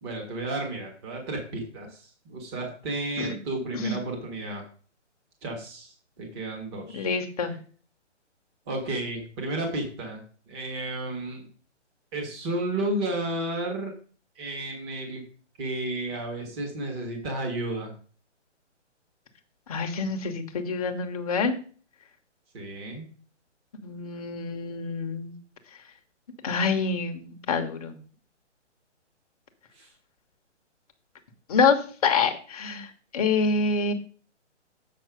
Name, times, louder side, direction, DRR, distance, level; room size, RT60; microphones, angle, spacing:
voice 1, 0.0-4.6 5.4-7.1 8.7-10.2 10.5-11.4 12.1-13.9 14.3-15.2 15.6-18.0 22.5-23.0 29.8-29.9, right 2 dB, 20° right, 1 dB, 1.5 m, -32 dB
voice 2, 6.9-7.6 19.7-21.6 23.8-25.4 26.4-28.0 31.5-33.9, left 5 dB, 30° left, 5 dB, 1.0 m, -26 dB
7.7 x 5.8 x 4.9 m, 0.41 s
hypercardioid pair, 160°, 36 cm